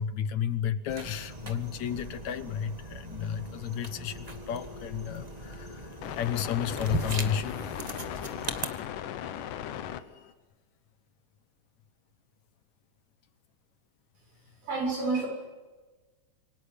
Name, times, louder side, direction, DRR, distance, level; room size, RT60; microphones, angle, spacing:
voice 1, 0.0-8.0, left 8 dB, 70° left, 12 dB, 2.2 m, -32 dB
sound 1, 0.9-8.7, right 2 dB, 20° right, 1.0 m, -40 dB
sound 2, 3.6-10.3, left 10 dB, 90° left, 2.7 m, -39 dB
voice 2, 14.4-15.3, right 3 dB, 80° right, 1 dB, 8.8 m, -30 dB
27.5 x 24.5 x 8.3 m, 1.3 s
omnidirectional pair, 3.6 m